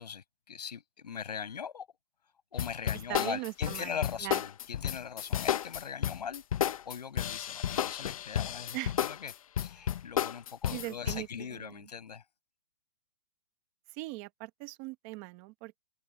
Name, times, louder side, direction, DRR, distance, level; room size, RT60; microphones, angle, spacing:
voice 1, 0.0-1.9 2.5-9.3 9.6-12.2, left 7 dB, 80° left, 7.1 m, -41 dB
sound 1, 2.6-11.2, left 10 dB, 60° left, 0.5 m, -32 dB
voice 2, 3.1-3.9 4.2-4.4 8.7-8.9 10.7-11.3 11.5-11.7 13.9-15.8, right 22 dB, 20° right, 1.0 m, -39 dB
open air
hypercardioid pair, 170°, 21 cm